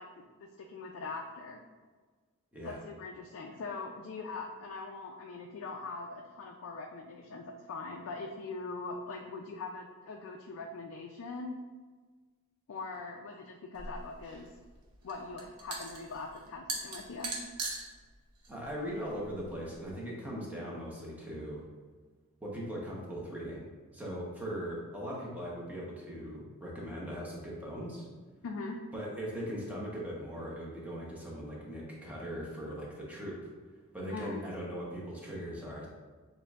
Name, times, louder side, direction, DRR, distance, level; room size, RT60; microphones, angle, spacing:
voice 1, 0.0-1.6 2.6-11.6 12.7-14.6 15.0-17.3 28.4-28.8 34.1-34.4, left 3 dB, 60° left, 2 dB, 0.4 m, -42 dB
sound 1, 13.7-19.9, right 3 dB, 90° right, 0.9 m, -42 dB
voice 2, 18.5-21.6 22.4-23.6 23.9-28.1 28.9-33.5 33.9-35.9, equal, 5° right, -5 dB, 0.9 m, -39 dB
6.6 x 2.6 x 2.4 m, 1.4 s
head